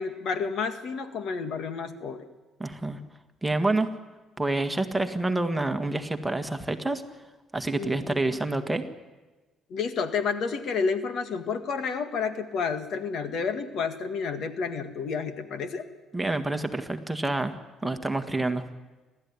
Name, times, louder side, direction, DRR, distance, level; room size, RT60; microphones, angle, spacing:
voice 1, 0.0-2.2 7.8-8.2 9.7-15.8, left 5 dB, 65° left, 8 dB, 1.8 m, -30 dB
voice 2, 2.6-3.0 3.4-3.9 4.4-7.0 7.5-8.8 16.1-17.5 17.8-18.7, right 2 dB, 10° right, 6 dB, 1.7 m, -27 dB
29.5 x 13.0 x 9.8 m, 1.2 s
cardioid pair, 110°, 0 cm